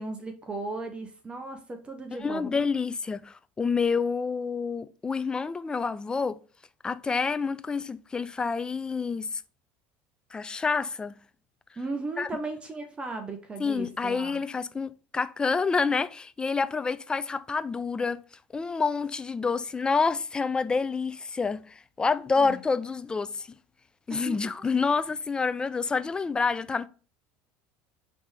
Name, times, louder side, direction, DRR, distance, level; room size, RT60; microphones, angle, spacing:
voice 1, 0.0-2.5 11.8-14.4 22.4-22.6 24.1-24.4, right 3 dB, 20° right, 0.7 m, -36 dB
voice 2, 2.2-6.4 6.8-9.4 10.3-11.2 12.2-12.3 13.6-18.2 18.5-23.5 24.1-26.9, left 4 dB, 15° left, 0.3 m, -28 dB
5.0 x 3.4 x 3.2 m
supercardioid pair, 115°, 5 cm